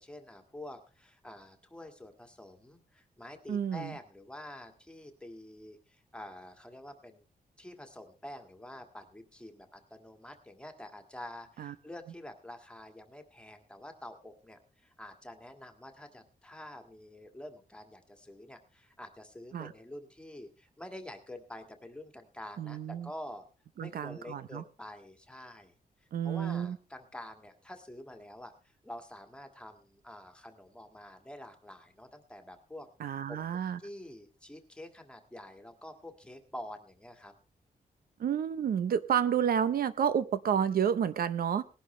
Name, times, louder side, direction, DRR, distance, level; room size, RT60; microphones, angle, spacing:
voice 1, 0.0-7.2 7.6-23.4 23.8-25.7 26.2-33.4 33.8-37.3, left 1 dB, 5° left, 1.8 m, -47 dB
voice 2, 3.5-3.9 11.6-11.7 19.5-19.7 22.6-23.1 23.8-24.6 26.1-26.8 33.0-33.8 38.2-41.6, right 8 dB, 75° right, 0.7 m, -30 dB
19.5 x 11.5 x 3.2 m
wide cardioid pair, 175°, 15 cm